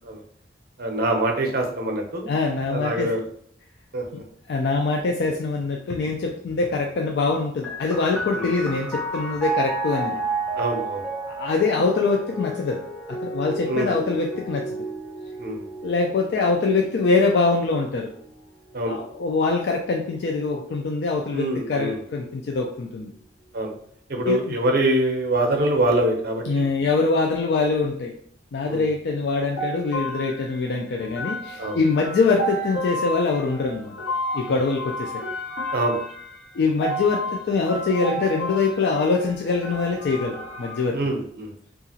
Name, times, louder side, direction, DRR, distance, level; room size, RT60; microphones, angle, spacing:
voice 1, 0.8-2.3 2.7-3.2 3.9-4.2 8.3-8.5 10.6-11.1 13.6-13.9 15.4-15.7 18.7-18.9 21.3-22.0 23.5-23.7 24.1-26.7 28.7-28.8 31.6-31.8 34.5-34.6 35.7-36.0 40.9-41.5, right 1 dB, 55° right, 3 dB, 0.6 m, -24 dB
voice 2, 2.3-3.1 4.5-10.2 11.3-12.8 13.1-14.8 15.8-18.1 18.9-23.1 24.2-24.5 26.5-28.1 28.5-33.9 34.3-35.1 36.5-41.0, left 4 dB, 60° left, 0 dB, 0.3 m, -24 dB
sound 1, 7.6-20.9 21.7-22.5, right 3 dB, 5° left, 0.5 m, -33 dB
sound 2, 29.6-40.9, equal, 85° left, 0.8 m, -32 dB
2.8 x 2.4 x 2.7 m, 0.63 s
head